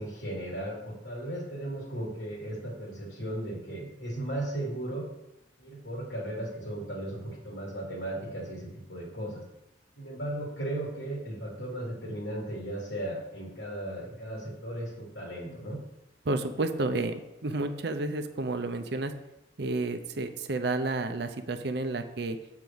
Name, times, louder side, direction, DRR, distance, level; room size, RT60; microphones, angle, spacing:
voice 1, 0.0-5.1 5.6-9.4 10.0-15.8, right 1 dB, 85° left, -3 dB, 2.4 m, -36 dB
voice 2, 16.2-19.1 19.6-22.4, right 2 dB, 60° right, 8 dB, 0.6 m, -31 dB
7.8 x 4.8 x 7.0 m, 0.90 s
head